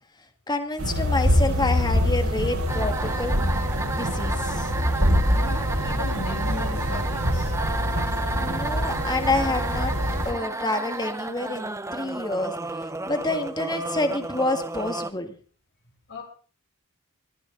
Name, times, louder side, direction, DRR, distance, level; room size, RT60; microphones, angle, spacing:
voice 1, 0.5-3.4 3.9-4.7 8.3-9.9 10.2-12.5 13.1-15.4, left 2 dB, 20° left, 7 dB, 1.7 m, -28 dB
sound 1, 0.8-10.3, equal, 70° right, 5.9 m, -25 dB
sound 2, 2.7-15.1, right 2 dB, 15° right, 0.9 m, -32 dB
voice 2, 5.3-7.5 16.1-16.2, left 1 dB, 55° left, 0 dB, 7.6 m, -37 dB
23.0 x 15.0 x 3.9 m, 0.42 s
head